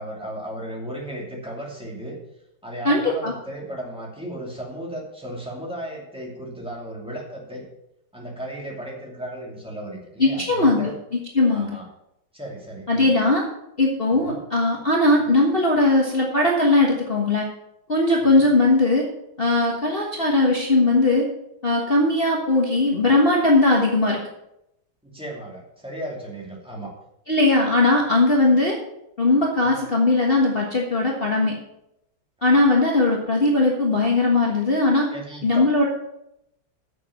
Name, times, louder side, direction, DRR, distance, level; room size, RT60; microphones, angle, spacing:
voice 1, 0.0-2.2 2.6-7.7 8.1-11.0 11.5-11.8 12.3-13.1 14.2-14.4 18.2-18.5 25.0-26.9 28.4-28.6 29.6-29.7 32.4-32.6 35.1-35.7, right 1 dB, 5° right, -2 dB, 2.5 m, -35 dB
voice 2, 2.8-3.3 10.2-11.7 12.9-13.4 13.8-17.5 17.9-19.0 19.4-21.2 21.6-24.2 27.3-28.8 29.2-31.5 32.4-35.1 35.4-35.9, left 2 dB, 30° left, -2 dB, 1.5 m, -19 dB
8.5 x 7.3 x 7.0 m, 0.82 s
omnidirectional pair, 2.2 m